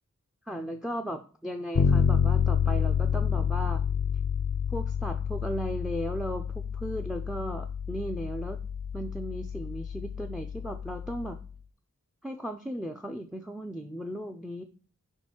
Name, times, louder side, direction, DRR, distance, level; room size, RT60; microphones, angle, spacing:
voice 1, 0.5-3.8 4.7-8.6 8.9-11.4 12.2-14.6, equal, ahead, 4 dB, 0.4 m, -36 dB
Bass guitar, 1.7-11.5, left 7 dB, 75° left, 0.4 m, -29 dB
5.4 x 4.5 x 4.3 m, 0.41 s
head